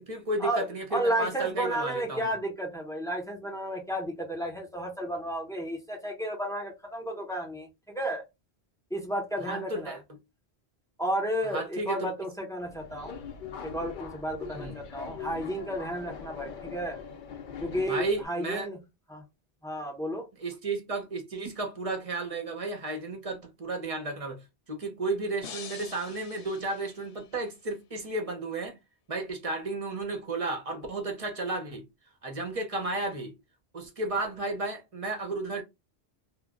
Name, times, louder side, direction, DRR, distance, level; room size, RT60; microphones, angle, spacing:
voice 1, 0.0-2.3 9.4-10.0 11.5-12.1 14.5-14.8 17.9-18.7 20.4-28.8 29.1-31.8 32.2-33.3 33.7-35.6, right 2 dB, 40° right, 0.6 m, -33 dB
voice 2, 0.9-8.2 8.9-10.0 11.0-13.1 13.6-17.0 17.6-18.8 19.1-19.2 19.6-20.3, right 1 dB, 5° left, 0.6 m, -32 dB
Subway metro underground, 12.6-18.3, left 6 dB, 60° left, 0.6 m, -42 dB
sound 1, 25.4-27.5, left 7 dB, 85° left, 0.8 m, -46 dB
2.1 x 2.1 x 3.5 m
omnidirectional pair, 1.1 m